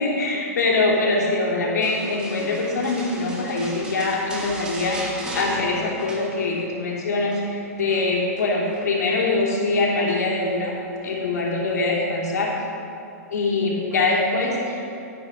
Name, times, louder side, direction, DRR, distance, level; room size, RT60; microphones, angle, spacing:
voice 1, 0.0-10.7 11.0-12.5 13.3-14.9, left 3 dB, 90° left, -3 dB, 3.1 m, -23 dB
sound 1, 1.8-6.8 7.1-7.5 7.9-8.9 10.1-10.5 11.0-11.2, right 2 dB, 10° right, 1.2 m, -37 dB
11.5 x 8.6 x 5.2 m, 2.7 s
hypercardioid pair, 165°, 9 cm